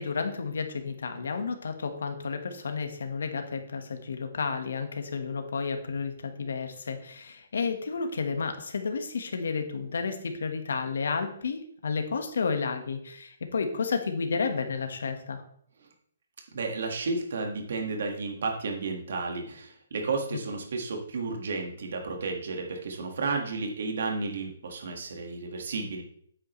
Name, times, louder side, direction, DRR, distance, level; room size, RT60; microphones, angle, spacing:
voice 1, 0.0-15.4, left 5 dB, 80° left, 6 dB, 1.4 m, -31 dB
voice 2, 16.5-26.0, right 3 dB, 65° right, 2 dB, 1.7 m, -32 dB
8.8 x 7.9 x 3.2 m, 0.64 s
hypercardioid pair, 165°, 0 cm